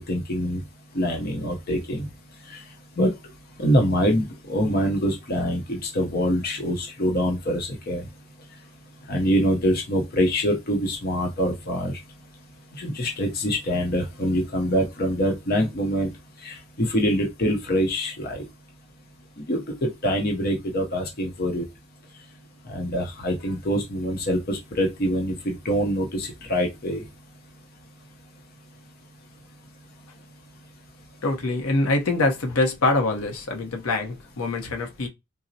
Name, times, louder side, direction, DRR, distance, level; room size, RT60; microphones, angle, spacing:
voice 1, 0.1-0.6 0.9-2.1 2.5-2.6 3.0-3.1 3.6-8.0 9.1-12.0 12.8-16.1 16.4-18.4 19.5-21.6 22.7-27.0, equal, 45° left, 0.6 m, -24 dB
voice 2, 31.2-35.1, left 2 dB, 80° left, 0.7 m, -24 dB
3.8 x 2.0 x 2.6 m
head